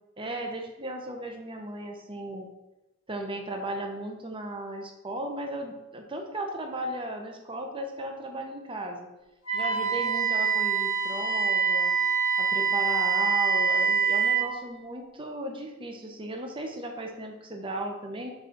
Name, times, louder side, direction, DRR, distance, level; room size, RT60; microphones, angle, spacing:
voice 1, 0.2-2.5 3.1-9.1 9.5-11.9 12.4-18.3, right 1 dB, 25° right, 3 dB, 0.8 m, -36 dB
Wind instrument woodwind instrument, 9.4-14.5, right 6 dB, 85° left, 1.6 m, -25 dB
4.9 x 3.8 x 5.1 m, 1.0 s
head